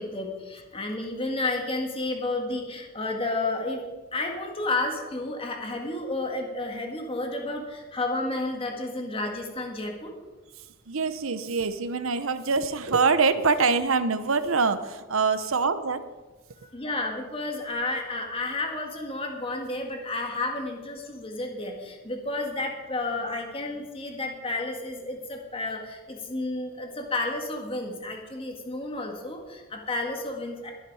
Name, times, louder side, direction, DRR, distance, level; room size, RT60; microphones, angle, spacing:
voice 1, 0.0-3.8 4.1-10.1 16.7-30.7, left 2 dB, 25° left, 1 dB, 1.8 m, -31 dB
voice 2, 10.9-16.1, right 4 dB, 75° right, 12 dB, 0.9 m, -24 dB
21.5 x 7.4 x 4.9 m, 1.2 s
head